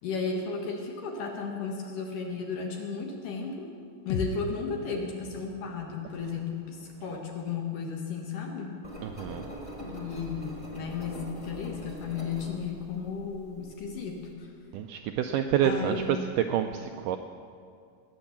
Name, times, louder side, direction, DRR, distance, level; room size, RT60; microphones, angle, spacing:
voice 1, 0.0-3.7 4.1-8.8 9.9-14.5 15.6-16.3, left 5 dB, 65° left, 1 dB, 2.8 m, -34 dB
sound 1, 4.1-8.1, left 5 dB, 90° left, 2.8 m, -40 dB
Engine, 8.8-14.3, equal, 20° left, 0.9 m, -43 dB
voice 2, 9.0-9.4 14.7-16.0 16.5-17.2, right 10 dB, 90° right, 6 dB, 1.8 m, -28 dB
19.5 x 9.4 x 7.1 m, 2.3 s
omnidirectional pair, 4.4 m